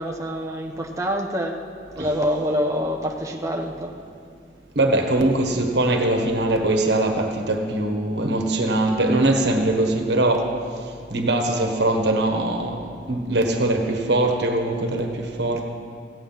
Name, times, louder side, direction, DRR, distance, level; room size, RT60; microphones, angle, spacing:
voice 1, 0.0-1.6 2.0-3.9, equal, 20° right, 0.9 m, -26 dB
voice 2, 4.8-10.5 11.1-12.8 13.1-15.6, right 1 dB, 65° right, 1.4 m, -21 dB
15.5 x 9.2 x 5.7 m
head